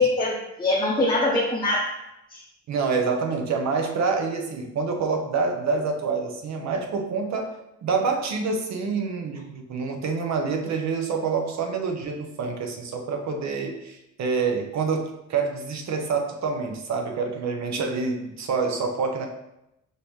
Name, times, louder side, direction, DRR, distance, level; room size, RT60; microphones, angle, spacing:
voice 1, 0.0-1.9 2.3-2.4, left 2 dB, 15° left, -4 dB, 0.7 m, -23 dB
voice 2, 2.7-7.5 7.8-19.3, right 4 dB, 65° right, 4 dB, 0.8 m, -27 dB
5.3 x 2.8 x 3.1 m, 0.88 s
cardioid pair, 90°, 30 cm